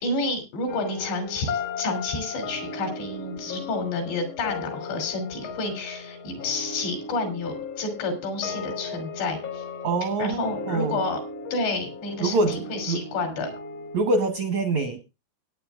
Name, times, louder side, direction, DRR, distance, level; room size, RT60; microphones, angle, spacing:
voice 1, 0.0-9.6 10.2-11.2 11.5-13.5, left 3 dB, 85° left, 6 dB, 5.2 m, -30 dB
sound 1, 0.7-14.0, left 4 dB, 65° left, 1.5 m, -36 dB
voice 2, 9.8-11.0 12.2-13.0 13.9-15.0, right 3 dB, 75° right, 7 dB, 1.6 m, -25 dB
22.0 x 9.5 x 2.4 m, 0.25 s
omnidirectional pair, 4.9 m